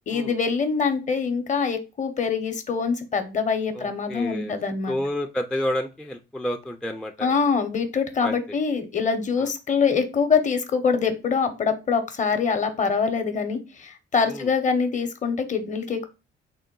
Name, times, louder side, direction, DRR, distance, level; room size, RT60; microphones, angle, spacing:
voice 1, 0.1-5.0 7.2-16.1, left 5 dB, 40° left, 8 dB, 0.7 m, -24 dB
voice 2, 3.7-4.5 4.9-7.3 8.2-8.4 9.4-9.5 14.3-14.5, left 1 dB, 5° left, 4 dB, 0.3 m, -30 dB
3.7 x 2.1 x 3.7 m, 0.29 s
cardioid pair, 90°, 20 cm